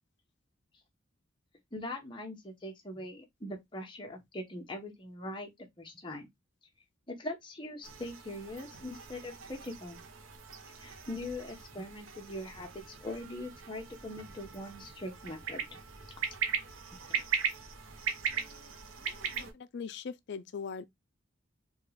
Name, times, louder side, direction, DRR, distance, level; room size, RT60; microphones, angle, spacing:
voice 1, 1.7-5.5 5.8-6.3 7.1-10.0 10.8-15.8 16.9-17.2, left 1 dB, 25° left, 0.9 m, -42 dB
sound 1, 7.8-19.5, right 6 dB, 85° right, 0.7 m, -39 dB
voice 2, 18.3-20.9, left 6 dB, 60° left, 0.4 m, -43 dB
3.6 x 2.4 x 3.2 m
head